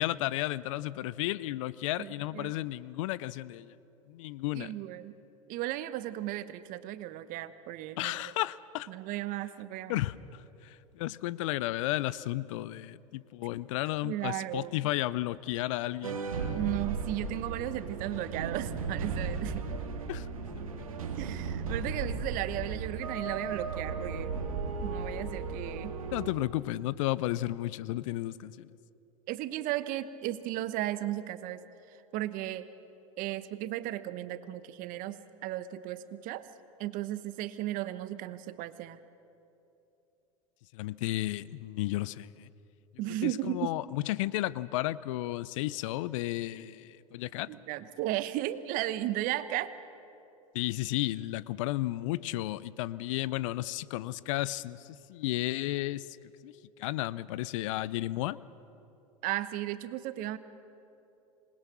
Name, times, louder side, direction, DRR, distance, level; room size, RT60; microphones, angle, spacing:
voice 1, 0.0-3.7 4.1-4.7 8.0-8.9 9.9-16.2 20.1-20.3 20.5-20.8 26.1-28.7 40.7-42.5 43.2-47.5 50.5-56.2 56.4-56.5 56.8-58.4, left 16 dB, 65° left, 20 dB, 0.6 m, -33 dB
voice 2, 2.0-2.5 4.5-5.1 5.5-8.2 8.9-10.0 14.0-14.8 16.5-19.6 21.1-24.3 24.8-26.0 29.3-31.6 31.9-32.7 33.2-36.5 36.8-39.0 43.0-43.7 47.5-49.7 59.2-60.4, right 14 dB, 50° right, 13 dB, 1.1 m, -35 dB
sound 1, 16.0-26.3, right 4 dB, 85° right, 1.9 m, -35 dB
26.5 x 20.5 x 6.2 m, 2.8 s
hypercardioid pair, 90°, 18 cm